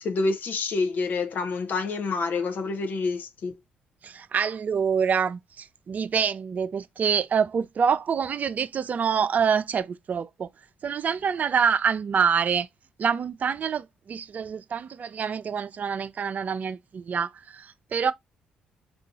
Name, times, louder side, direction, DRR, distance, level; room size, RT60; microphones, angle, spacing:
voice 1, 0.0-3.5, left 3 dB, 55° left, 0.6 m, -27 dB
voice 2, 4.0-10.5 10.8-12.7 13.0-18.1, right 7 dB, 45° right, 0.4 m, -26 dB
3.8 x 2.4 x 2.6 m
hypercardioid pair, 50°, 4 cm